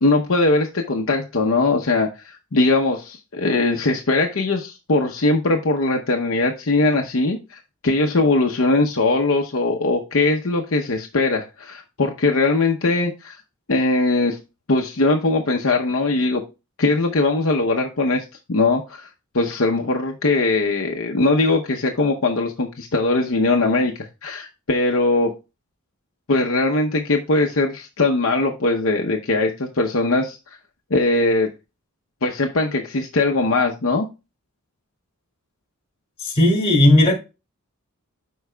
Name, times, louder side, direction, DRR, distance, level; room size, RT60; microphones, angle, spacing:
voice 1, 0.0-13.4 13.7-14.4 14.7-16.4 16.8-19.1 19.3-25.3 26.3-30.4 30.9-31.5 32.2-34.1, left 2 dB, 60° left, 0.8 m, -20 dB
voice 2, 36.2-37.1, left 1 dB, 25° left, 2.3 m, -15 dB
13.0 x 4.7 x 2.2 m
head